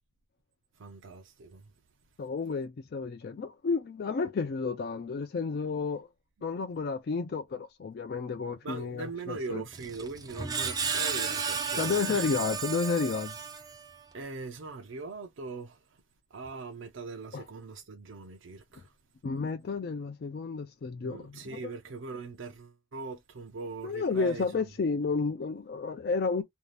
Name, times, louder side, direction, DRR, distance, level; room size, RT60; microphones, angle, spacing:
voice 1, 0.8-1.7 8.6-12.3 14.1-16.0 16.3-18.9 21.0-24.7, right 4 dB, 70° right, 0.5 m, -41 dB
voice 2, 2.2-6.1 6.4-9.6 11.8-13.3 17.3-17.4 19.2-21.6 23.8-26.4, left 4 dB, 50° left, 0.4 m, -31 dB
Screech, 9.7-14.0, right 5 dB, 20° right, 0.4 m, -33 dB
2.7 x 2.3 x 3.2 m
head